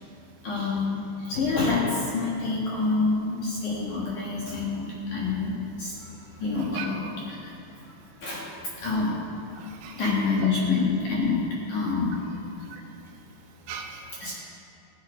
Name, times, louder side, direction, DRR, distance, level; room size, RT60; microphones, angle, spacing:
voice 1, 0.4-6.1 6.4-7.5 8.2-8.5 8.8-9.1 10.0-11.4 11.7-12.4 14.2-14.4, left 4 dB, 60° left, -5 dB, 2.2 m, -27 dB
voice 2, 6.0-6.9 8.0-8.2 9.5-10.5 12.6-14.4, right 7 dB, 90° right, 2 dB, 2.2 m, -42 dB
16.0 x 10.0 x 4.9 m, 2.8 s
omnidirectional pair, 5.5 m